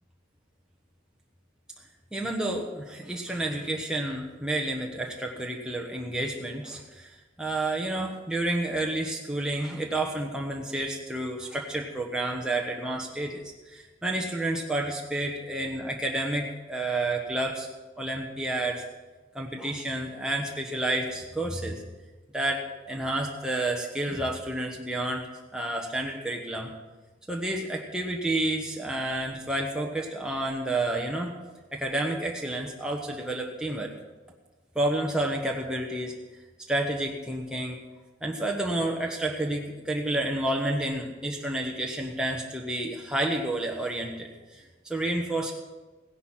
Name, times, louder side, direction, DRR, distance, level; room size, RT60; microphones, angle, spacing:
voice 1, 2.1-17.7 18.0-18.8 19.3-21.8 22.3-26.7 27.3-31.3 31.7-33.9 34.7-36.1 36.7-37.8 38.2-45.5, right 1 dB, 5° right, -1 dB, 1.2 m, -30 dB
16.5 x 11.0 x 5.8 m, 1.2 s
head